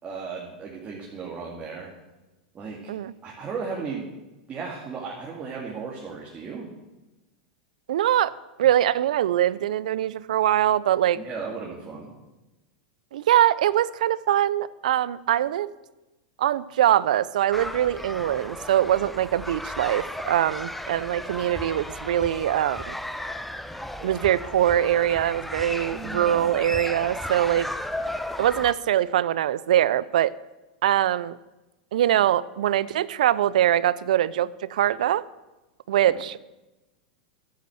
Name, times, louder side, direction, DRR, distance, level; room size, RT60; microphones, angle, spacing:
voice 1, 0.0-1.9 2.5-2.8 3.2-4.1 4.5-6.7 11.2-12.1 25.9-26.5 36.1-36.2, right 5 dB, 30° right, -2 dB, 2.4 m, -35 dB
voice 2, 7.9-8.3 8.6-11.2 13.1-15.7 16.4-23.0 24.0-27.7 28.4-30.3 30.8-31.4 31.9-35.2 35.9-36.5, right 11 dB, 75° right, 20 dB, 0.5 m, -23 dB
sound 1, 17.5-28.7, left 1 dB, 5° left, 0.8 m, -35 dB
11.5 x 8.5 x 7.9 m, 1.1 s
hypercardioid pair, 105°, 4 cm